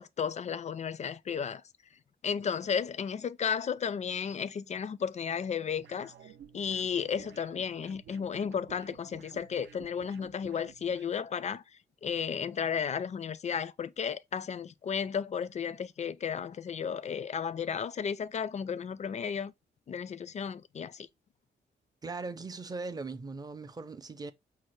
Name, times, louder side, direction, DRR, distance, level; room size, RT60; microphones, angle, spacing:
voice 1, 0.0-1.6 2.2-6.1 6.5-11.6 12.0-19.5 19.9-21.1, left 7 dB, 40° left, 0.4 m, -33 dB
sound 1, 5.8-11.1, right 8 dB, 75° right, 0.5 m, -53 dB
voice 2, 22.0-24.3, right 3 dB, 20° right, 0.5 m, -39 dB
5.3 x 2.1 x 3.0 m
cardioid pair, 100°, 19 cm